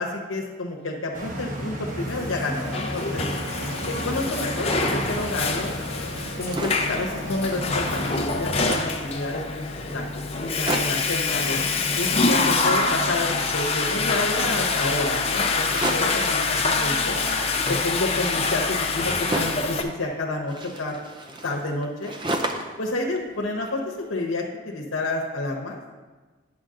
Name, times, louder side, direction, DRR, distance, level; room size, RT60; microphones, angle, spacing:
voice 1, 0.0-3.2 3.8-5.7 6.4-8.0 8.4-9.7 9.9-11.6 12.0-17.2 17.7-20.9 21.4-22.1 22.8-25.8, left 2 dB, 85° left, -1 dB, 1.0 m, -29 dB
sound 1, 1.1-8.2, equal, 40° right, 1.1 m, -33 dB
Water / Toilet flush, 2.3-19.8, left 3 dB, 30° left, 0.6 m, -25 dB
sound 2, 6.3-7.0 7.5-7.6 7.8-9.0 9.7-9.8 10.0-10.1 10.4-11.1 11.9-12.7 12.9-14.2 15.6-16.3 17.2-19.7 20.5-22.8 23.2-24.1, right 1 dB, 25° right, 0.5 m, -33 dB
9.7 x 6.0 x 3.8 m, 1.3 s
head